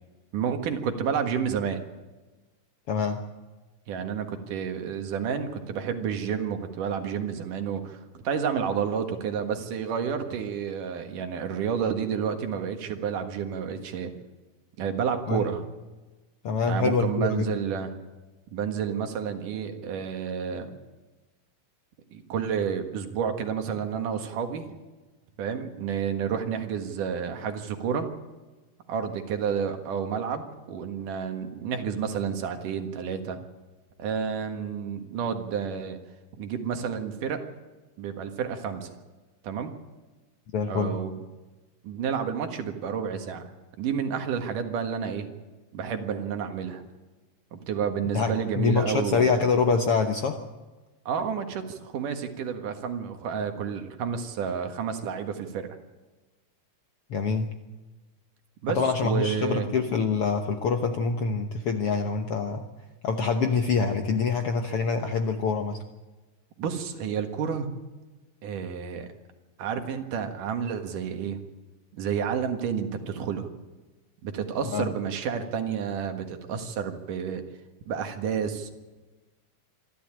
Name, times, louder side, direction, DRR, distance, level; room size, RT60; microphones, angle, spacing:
voice 1, 0.3-1.8 3.9-14.1 14.8-15.7 16.7-17.9 18.5-20.7 22.1-24.8 25.4-28.1 28.9-33.4 34.0-36.0 36.4-37.4 38.0-38.9 39.4-39.7 40.7-41.2 41.8-43.5 43.8-45.3 45.7-46.8 47.5-49.4 51.1-55.7 58.6-59.7 66.6-67.7 68.4-69.1 69.6-71.4 71.9-73.5 74.2-77.4 77.9-78.7, right 7 dB, 70° right, 6 dB, 3.2 m, -30 dB
voice 2, 2.9-3.2 15.3-15.5 16.4-17.5 40.5-41.0 48.1-50.4 57.1-57.5 58.7-62.7 63.0-65.8 74.7-74.9, left 5 dB, 65° left, 6 dB, 1.5 m, -25 dB
26.0 x 12.5 x 8.8 m, 1.2 s
omnidirectional pair, 3.9 m